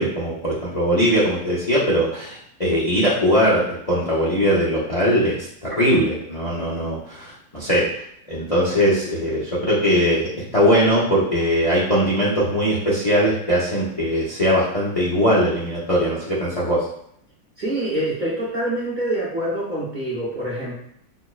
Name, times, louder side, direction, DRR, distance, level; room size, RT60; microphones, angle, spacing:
voice 1, 0.0-7.9 8.3-16.9, equal, 60° left, -8 dB, 0.3 m, -20 dB
voice 2, 17.6-20.8, right 1 dB, 45° right, -8 dB, 0.6 m, -25 dB
5.6 x 2.0 x 2.4 m, 0.71 s
omnidirectional pair, 1.8 m